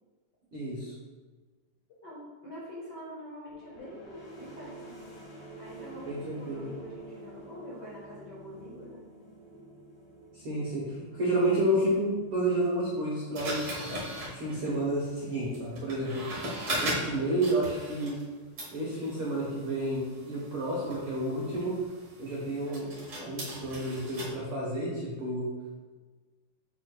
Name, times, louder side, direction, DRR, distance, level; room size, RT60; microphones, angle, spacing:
voice 1, 0.5-0.9 6.1-6.7 10.3-13.8 14.3-16.3 16.8-18.2 18.7-21.7 22.2-22.9 23.2-25.5, right 1 dB, 75° right, -5 dB, 1.2 m, -30 dB
voice 2, 2.0-5.1 5.6-9.0 16.3-16.6, equal, 75° left, -7 dB, 0.9 m, -45 dB
sound 1, 3.5-15.0, right 1 dB, 50° left, 2.6 m, -50 dB
sound 2, 13.4-18.3 18.6-24.3, right 1 dB, 40° right, 1.7 m, -38 dB
9.4 x 5.0 x 2.2 m, 1.3 s
omnidirectional pair, 4.1 m